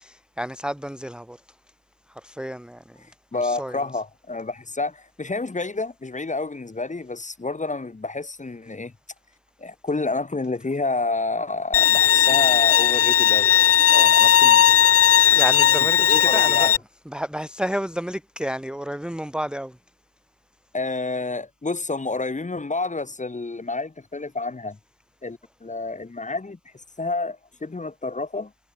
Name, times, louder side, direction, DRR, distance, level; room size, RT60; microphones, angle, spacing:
voice 1, 0.0-1.4 2.2-2.8 3.3-3.8 14.1-14.6 15.3-16.7 17.0-19.7, equal, ahead, 1.5 m, -31 dB
voice 2, 3.0-8.9 9.6-13.6 13.9-14.8 16.0-16.7 20.7-24.8 25.2-26.6 27.0-28.5, left 3 dB, 15° left, 2.1 m, -29 dB
Bowed string instrument, 11.7-16.8, left 10 dB, 35° left, 0.4 m, -17 dB
cardioid pair, 135°, 46 cm